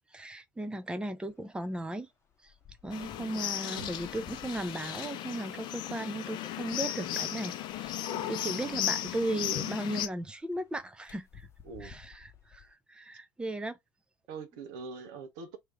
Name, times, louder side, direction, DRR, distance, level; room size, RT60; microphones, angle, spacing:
voice 1, 0.1-2.1 2.4-2.5 2.8-11.5 11.8-13.8, right 1 dB, 10° right, 0.6 m, -36 dB
sound 1, 1.3-1.4 1.7-12.7, left 6 dB, 25° left, 0.9 m, -56 dB
sound 2, 2.9-10.1, left 12 dB, 45° left, 0.6 m, -35 dB
sound 3, 3.6-4.2 4.9-5.2 5.6-5.7 6.5-7.6 8.1-8.5 8.8-9.1 9.6-9.9 10.2-10.3 10.8-11.6, left 4 dB, 80° left, 0.8 m, -54 dB
voice 2, 8.0-8.8 11.6-12.0 14.3-15.6, right 5 dB, 60° right, 0.9 m, -44 dB
3.1 x 2.8 x 3.4 m
figure-of-eight pair, 70°, 11 cm